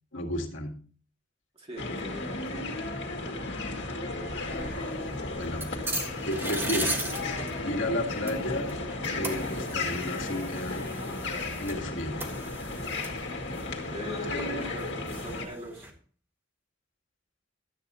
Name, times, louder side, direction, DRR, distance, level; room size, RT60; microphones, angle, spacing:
voice 1, 0.1-0.8 5.4-5.8 6.2-7.1 7.6-8.8 9.1-10.9 11.6-12.3, left 1 dB, 75° left, 1 dB, 1.9 m, -32 dB
voice 2, 1.6-2.7 13.9-15.9, equal, 30° right, 0 dB, 2.6 m, -41 dB
sound 1, 1.8-15.5, left 2 dB, 60° left, 2.1 m, -34 dB
sound 2, 4.4-15.9, right 1 dB, 10° right, 1.5 m, -39 dB
12.5 x 8.7 x 4.1 m, 0.43 s
head